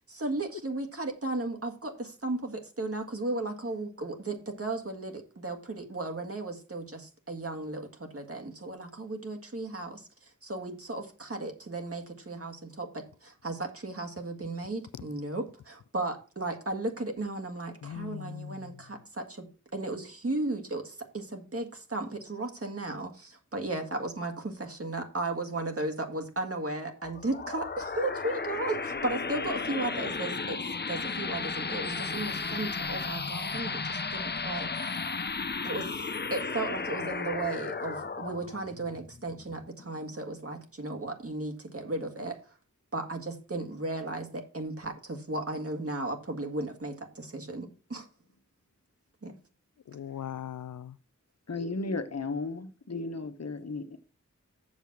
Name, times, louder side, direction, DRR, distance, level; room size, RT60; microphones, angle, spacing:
voice 1, 0.1-10.1 10.4-19.5 19.7-30.6 30.9-34.9 35.6-42.4 42.9-48.1 49.2-49.3, right 2 dB, 50° right, 2.0 m, -35 dB
voice 2, 17.8-18.7 49.9-51.0, left 9 dB, 85° left, 0.5 m, -40 dB
sound 1, 27.0-40.1, left 4 dB, 35° left, 0.7 m, -34 dB
voice 3, 51.5-54.0, left 3 dB, 60° left, 1.4 m, -34 dB
7.3 x 7.0 x 5.9 m
wide cardioid pair, 65°, 30 cm